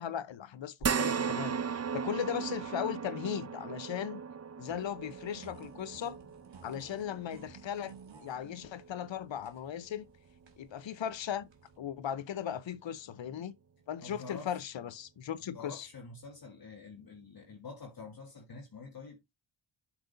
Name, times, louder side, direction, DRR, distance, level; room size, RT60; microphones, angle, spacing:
voice 1, 0.0-4.2 4.6-6.2 6.6-10.1 10.6-11.5 11.8-13.5 13.9-15.9, left 9 dB, 65° left, 0.8 m, -37 dB
sound 1, 0.8-9.4 9.9-10.0 11.4-11.5, right 6 dB, 30° right, 0.6 m, -37 dB
sound 2, 4.7-11.8, right 6 dB, 60° right, 1.7 m, -56 dB
voice 2, 14.0-14.6 15.5-19.2, left 4 dB, 45° left, 1.5 m, -47 dB
7.9 x 6.1 x 2.6 m
cardioid pair, 60°, 49 cm